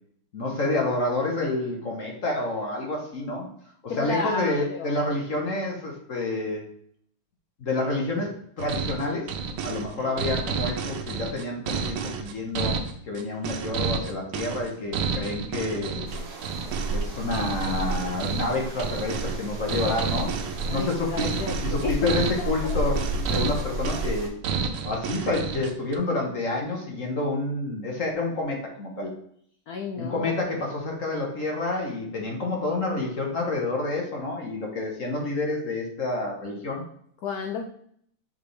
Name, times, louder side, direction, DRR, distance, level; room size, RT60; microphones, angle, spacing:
voice 1, 0.3-3.5 4.0-6.6 7.6-12.7 13.1-16.2 16.9-20.3 20.7-21.3 21.6-24.3 24.8-29.1 30.0-36.8, left 2 dB, 45° left, 0 dB, 1.1 m, -28 dB
voice 2, 3.9-5.0 10.0-10.2 20.7-22.1 22.4-22.8 23.4-23.6 29.7-30.4 37.2-37.7, left 4 dB, 75° left, 1 dB, 0.8 m, -32 dB
sound 1, 8.6-26.0, right 5 dB, 80° right, 1.6 m, -30 dB
sound 2, 16.1-24.3, right 1 dB, 65° right, 0.5 m, -32 dB
6.1 x 5.0 x 3.3 m, 0.65 s
omnidirectional pair, 2.4 m